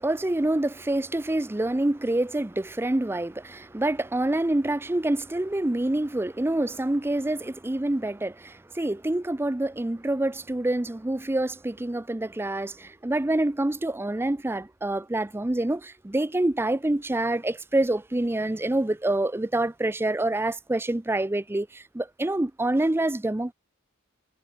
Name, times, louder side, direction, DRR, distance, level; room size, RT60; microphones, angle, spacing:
voice 1, 0.0-23.5, right 1 dB, 10° right, 0.5 m, -26 dB
head